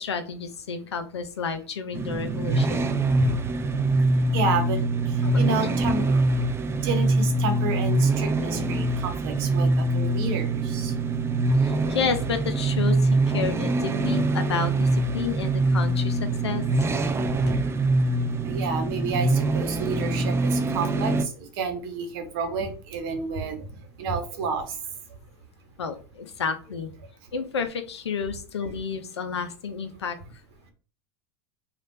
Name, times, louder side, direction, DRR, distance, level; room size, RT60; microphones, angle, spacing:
voice 1, 0.0-2.9 5.2-5.3 5.6-5.7 11.6-16.6 25.8-26.9 27.3-30.2, left 5 dB, 85° left, 8 dB, 0.5 m, -31 dB
sound 1, 1.9-21.2, right 2 dB, 20° right, 0.4 m, -24 dB
voice 2, 4.3-4.8 5.4-6.2 6.8-10.9 18.4-21.3 21.6-23.6 24.0-24.7, right 4 dB, 60° right, 6 dB, 0.9 m, -30 dB
3.3 x 2.4 x 2.5 m, 0.38 s
hypercardioid pair, 85°, 14 cm